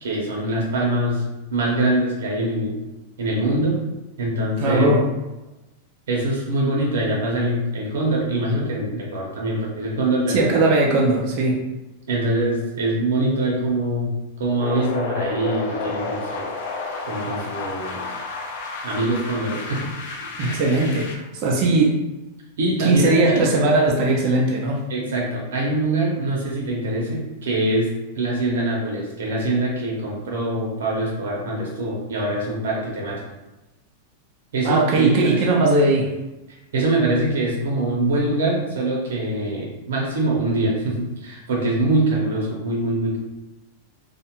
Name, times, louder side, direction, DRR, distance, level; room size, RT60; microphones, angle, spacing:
voice 1, 0.0-1.2 1.5-2.8 3.2-3.8 4.2-4.9 6.1-10.6 12.1-14.1 14.4-16.5 17.1-18.0 18.8-19.9 20.4-20.6 22.6-23.4 24.9-27.9 28.1-33.2 34.5-35.4 36.7-43.2, right 2 dB, 90° right, -3 dB, 0.8 m, -23 dB
voice 2, 4.6-5.1 10.3-11.6 20.4-22.0 22.8-24.8 34.6-36.1, right 2 dB, 45° right, -1 dB, 0.5 m, -19 dB
sound 1, 14.6-21.1, left 3 dB, 60° left, 0.4 m, -31 dB
2.4 x 2.1 x 2.9 m, 1.0 s
supercardioid pair, 145°, 0 cm